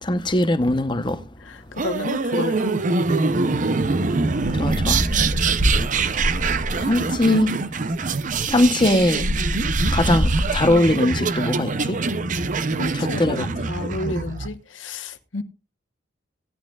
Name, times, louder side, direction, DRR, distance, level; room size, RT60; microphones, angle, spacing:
voice 1, 0.0-1.2 4.6-5.0 6.9-7.5 8.5-9.2 9.9-12.0 13.2-13.6, left 1 dB, 25° left, 0.9 m, -20 dB
voice 2, 1.4-2.7 12.7-15.4, left 2 dB, 90° left, 1.1 m, -31 dB
sound 1, 1.8-14.5, right 4 dB, 45° right, 0.6 m, -24 dB
sound 2, 4.4-6.9 7.9-8.0 8.3-10.9, equal, 90° right, 5.3 m, -25 dB
17.0 x 11.0 x 2.4 m
head